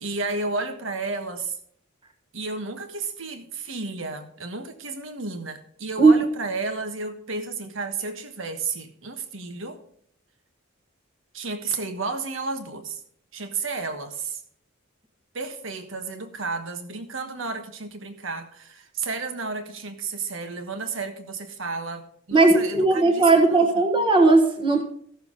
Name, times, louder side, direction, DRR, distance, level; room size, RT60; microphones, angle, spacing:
voice 1, 0.0-1.5 2.3-9.8 11.3-13.0 13.3-14.4 15.3-23.7, right 3 dB, 65° right, 7 dB, 1.4 m, -32 dB
voice 2, 22.3-24.8, right 3 dB, 25° right, 3 dB, 1.4 m, -17 dB
16.0 x 7.0 x 4.0 m, 0.63 s
head